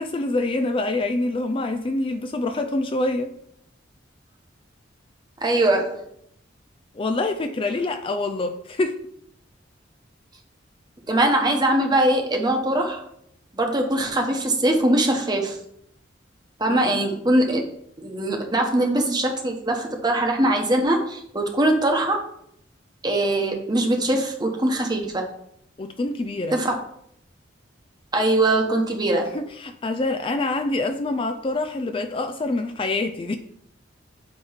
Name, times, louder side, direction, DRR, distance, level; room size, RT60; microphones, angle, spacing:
voice 1, 0.0-3.3 6.9-9.0 16.7-16.9 25.8-26.6 29.3-33.4, left 2 dB, 25° left, 6 dB, 0.4 m, -26 dB
voice 2, 5.4-6.0 11.1-13.0 13.5-15.6 16.6-17.6 18.0-22.2 23.0-25.2 26.5-26.7 28.1-29.3, right 1 dB, 20° right, 2 dB, 1.0 m, -22 dB
8.6 x 3.1 x 5.6 m, 0.74 s
head